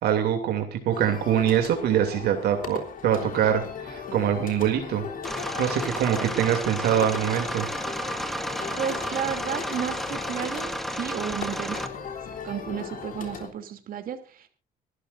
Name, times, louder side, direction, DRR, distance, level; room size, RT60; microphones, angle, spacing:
voice 1, 0.0-5.0 5.6-7.7, right 9 dB, 75° right, 4 dB, 2.9 m, -24 dB
sound 1, 0.9-13.5, left 6 dB, 55° left, 3.4 m, -38 dB
sound 2, 5.2-11.9, equal, ahead, 2.0 m, -32 dB
voice 2, 8.8-11.8 12.4-14.5, right 9 dB, 60° right, 6 dB, 3.1 m, -32 dB
25.0 x 13.0 x 2.7 m, 0.34 s
cardioid pair, 110°, 17 cm